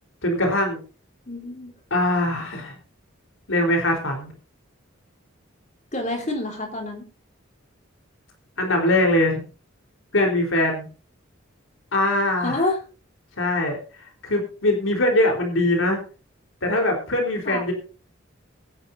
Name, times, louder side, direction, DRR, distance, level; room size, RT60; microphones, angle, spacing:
voice 1, 0.2-0.8 1.9-2.8 3.5-4.3 8.6-9.4 10.1-10.9 11.9-12.6 13.4-13.8 14.2-16.0 16.6-17.7, left 1 dB, 75° left, 2 dB, 4.1 m, -22 dB
voice 2, 1.3-1.7 5.9-7.0 12.4-12.8 17.5-17.6, left 2 dB, 35° left, 2 dB, 3.7 m, -27 dB
22.0 x 11.0 x 2.7 m, 0.35 s
head